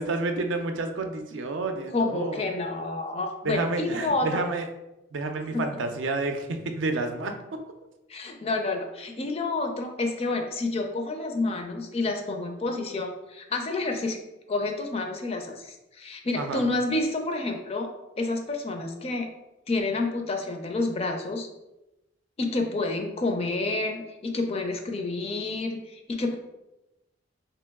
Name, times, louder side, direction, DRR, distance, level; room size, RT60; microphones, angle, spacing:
voice 1, 0.0-2.4 3.4-4.6 5.1-7.3 16.4-16.6, right 3 dB, 75° right, 6 dB, 0.4 m, -29 dB
voice 2, 1.9-4.5 5.5-5.7 8.1-14.2 14.5-17.9 18.2-19.3 19.7-21.5 22.4-26.3, left 2 dB, 30° left, 4 dB, 0.4 m, -29 dB
3.0 x 2.9 x 3.4 m, 0.96 s
head